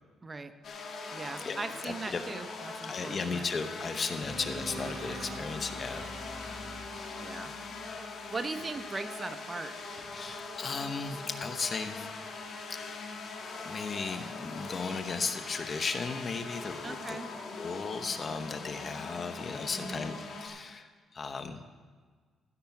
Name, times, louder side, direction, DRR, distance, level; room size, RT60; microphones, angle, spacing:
voice 1, 0.2-0.5 1.1-3.5 7.2-7.5 8.3-9.8 16.8-17.3 19.7-20.1, right 3 dB, 30° right, 10 dB, 0.7 m, -39 dB
sound 1, 0.6-20.5, left 4 dB, 60° left, 1.7 m, -42 dB
voice 2, 1.9-2.2 2.9-6.0 7.0-7.1 10.1-12.1 12.7-12.9 13.6-21.7, left 4 dB, 40° left, 9 dB, 0.9 m, -36 dB
sound 2, 4.2-8.3, equal, 25° left, 3.1 m, -44 dB
sound 3, 4.5-8.7, right 6 dB, 80° right, 1.3 m, -52 dB
15.0 x 6.9 x 6.0 m, 1.5 s
cardioid pair, 90°, 0 cm